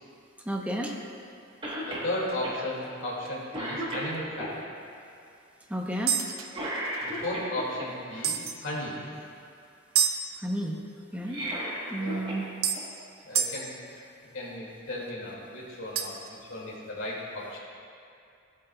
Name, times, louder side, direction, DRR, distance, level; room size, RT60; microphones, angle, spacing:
voice 1, 0.5-0.9 5.7-6.1 10.4-10.8 11.1-11.4 11.9-12.4, right 1 dB, 5° right, 0 dB, 0.8 m, -31 dB
Cough, 1.6-2.1 2.4-2.6 3.1-3.2 3.5-4.5 6.5-7.9 11.1-12.4 12.8-12.9 14.0-14.1, right 1 dB, 25° right, 1.2 m, -34 dB
voice 2, 1.8-4.5 7.0-9.0 12.0-12.3 13.2-13.7 14.3-17.6, left 1 dB, 70° left, -4 dB, 2.2 m, -35 dB
sound 1, 2.1-2.3 2.8-3.0 3.2-3.4 3.9-4.0 6.1-7.3 8.2-8.6 9.9-10.2 11.9-12.0 12.6-12.8 13.3-13.6 15.9-16.3, right 8 dB, 85° right, 0.7 m, -28 dB
15.0 x 8.2 x 2.3 m, 2.5 s
head